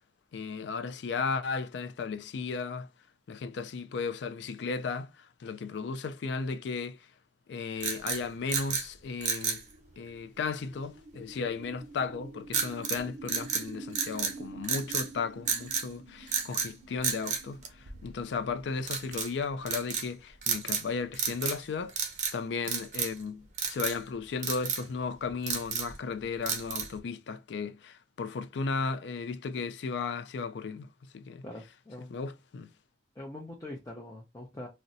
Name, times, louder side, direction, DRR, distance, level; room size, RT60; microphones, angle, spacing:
voice 1, 0.3-2.9 3.3-7.1 7.5-9.6 10.0-21.9 22.3-30.9 31.1-31.4 32.1-32.7, left 5 dB, 85° left, 0.4 m, -35 dB
sound 1, 7.8-8.9 9.2-9.6 12.5-13.0 13.3-14.4 14.6-15.1 15.5-15.9 16.3-16.7 17.0-18.2 18.8-19.3 19.7-20.1 20.4-20.9 21.1-21.6 21.9-22.4 22.7-23.2 23.6-24.0 24.4-24.8 25.3-26.0 26.5-27.0, right 6 dB, 40° right, 0.6 m, -32 dB
sound 2, 8.8-20.8, right 2 dB, 90° right, 0.4 m, -49 dB
voice 2, 31.4-32.2 33.2-34.7, left 1 dB, 20° left, 0.5 m, -43 dB
2.6 x 2.1 x 3.9 m
head